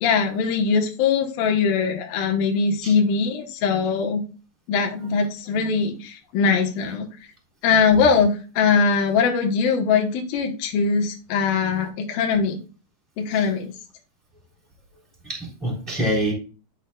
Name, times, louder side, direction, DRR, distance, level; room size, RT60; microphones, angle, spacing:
voice 1, 0.0-4.2 4.7-7.1 7.6-12.6 13.2-13.7, left 5 dB, 70° left, 2.6 m, -21 dB
voice 2, 15.2-16.3, equal, ahead, 2.9 m, -26 dB
12.0 x 5.3 x 2.2 m
omnidirectional pair, 4.7 m